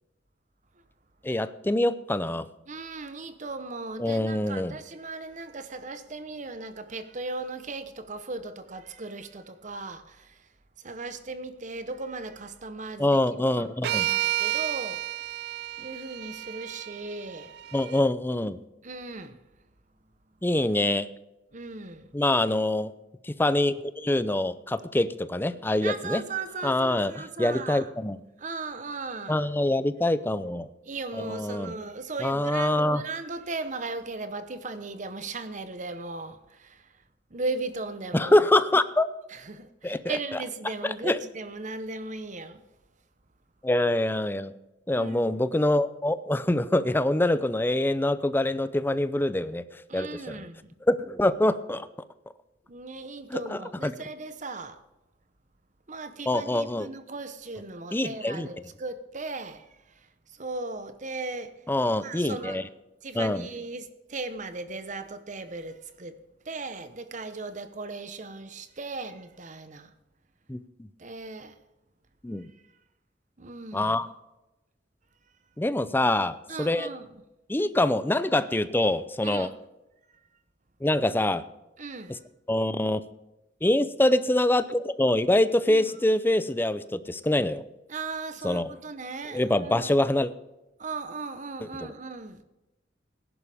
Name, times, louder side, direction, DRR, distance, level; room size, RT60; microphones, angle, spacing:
voice 1, 1.2-2.5 4.0-4.8 13.0-14.1 17.7-18.6 20.4-21.1 22.1-22.9 23.2-26.2 26.6-28.2 29.3-30.7 31.2-31.7 32.2-33.0 38.1-39.1 39.8-40.2 40.8-41.2 43.6-44.5 44.9-49.6 49.9-50.4 50.9-51.9 53.3-53.9 56.3-56.9 57.9-58.5 61.7-62.6 63.1-63.5 70.5-70.6 72.2-72.5 73.7-74.1 75.6-76.9 77.5-79.5 80.8-81.4 82.5-83.0 83.6-87.6 88.4-88.7 89.3-90.3, left 1 dB, 10° left, 0.5 m, -25 dB
voice 2, 2.7-10.4 10.8-13.2 13.6-15.2 15.8-17.7 18.8-19.4 21.5-22.1 25.8-27.9 28.4-29.5 30.8-36.9 37.3-38.3 39.3-42.6 44.9-45.4 49.9-50.7 52.7-54.8 55.9-59.7 60.0-61.5 62.0-62.7 63.0-66.2 66.4-69.9 71.0-71.6 73.4-73.9 76.5-77.1 79.2-79.5 81.8-82.2 85.7-85.9 87.9-89.9 90.8-92.4, right 3 dB, 40° right, 1.0 m, -37 dB
sound 1, 13.8-18.0, right 14 dB, 60° right, 0.3 m, -31 dB
17.0 x 11.0 x 3.5 m
head